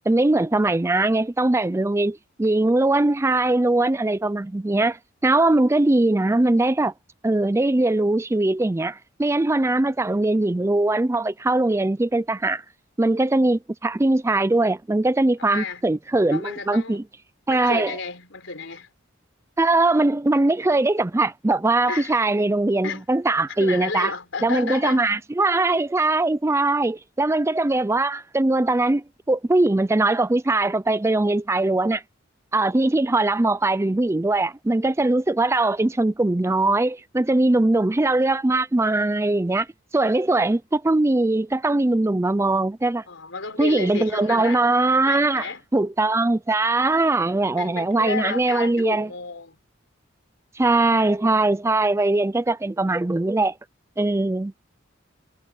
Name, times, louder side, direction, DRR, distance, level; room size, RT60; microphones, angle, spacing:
voice 1, 0.1-5.0 5.2-6.9 7.2-12.6 13.0-17.0 17.5-17.9 19.6-24.1 24.4-32.0 32.5-39.7 39.9-43.0 43.6-49.1 50.6-53.5 54.0-54.5, right 2 dB, 15° right, 0.4 m, -21 dB
voice 2, 15.4-15.8 16.3-17.0 17.5-18.9 21.9-22.2 22.8-23.0 23.6-25.2 43.1-44.6 45.0-45.6 47.6-49.6, left 4 dB, 70° left, 4.5 m, -32 dB
head